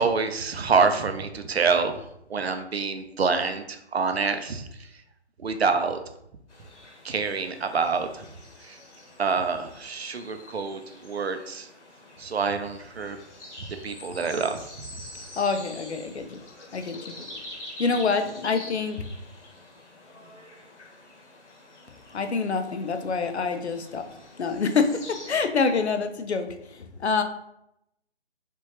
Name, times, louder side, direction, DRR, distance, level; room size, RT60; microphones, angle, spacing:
voice 1, 0.0-2.0 2.3-4.7 5.4-6.0 7.0-8.2 8.6-8.8 9.2-11.7 12.2-13.2 13.8-14.6, right 5 dB, 65° right, 8 dB, 0.6 m, -26 dB
sound 1, 6.5-25.3, left 1 dB, 85° left, 1.3 m, -46 dB
voice 2, 15.4-16.4 16.7-17.4 17.8-19.0 22.1-24.1 24.4-27.2, left 4 dB, 70° left, 7 dB, 0.7 m, -26 dB
4.5 x 3.4 x 3.0 m, 0.78 s
hypercardioid pair, 175°, 34 cm